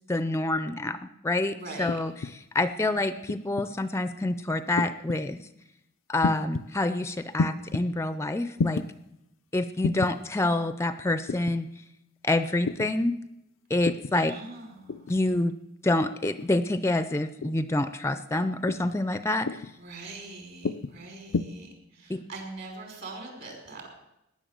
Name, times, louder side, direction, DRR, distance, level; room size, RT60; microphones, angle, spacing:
voice 1, 0.1-5.4 6.1-8.9 9.5-11.7 12.2-13.2 13.7-14.3 15.1-15.5 15.8-19.6 22.1-22.2, left 2 dB, 15° left, 12 dB, 0.5 m, -27 dB
voice 2, 1.5-2.0 2.6-2.9 14.1-15.1 19.8-23.9, right 3 dB, 55° right, 2 dB, 5.3 m, -43 dB
sound 1, 1.9-2.3 3.3-3.7 4.8-5.2 6.2-6.7 7.4-7.8 8.6-8.9 9.8-10.2 11.3-11.6 12.6-12.9 13.8-14.2 14.9-15.2 16.2-16.5 17.4-17.7 18.7-19.0 19.4-19.8 20.6-20.9 21.3-21.4, left 4 dB, 85° left, 0.5 m, -30 dB
18.0 x 10.5 x 7.4 m, 0.87 s
head